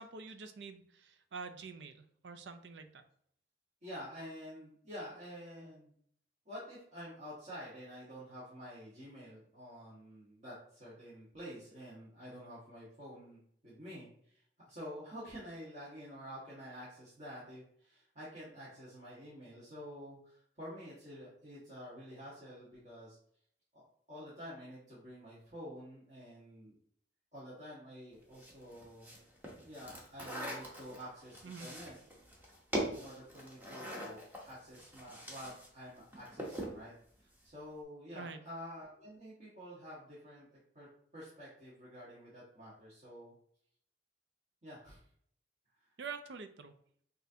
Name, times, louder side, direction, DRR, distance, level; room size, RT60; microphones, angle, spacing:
voice 1, 0.0-3.0 31.4-31.7 38.1-38.4 46.0-46.7, right 5 dB, 85° right, 9 dB, 0.5 m, -46 dB
voice 2, 3.8-5.9 6.4-23.2 23.7-26.7 27.3-29.1 29.6-32.0 33.0-36.9 37.2-40.9 41.1-43.3 44.6-45.0, equal, 40° right, -9 dB, 1.3 m, -49 dB
sound 1, 28.3-35.7 36.0-36.8, equal, 10° right, 0.8 m, -42 dB
6.0 x 2.7 x 2.7 m, 0.64 s
head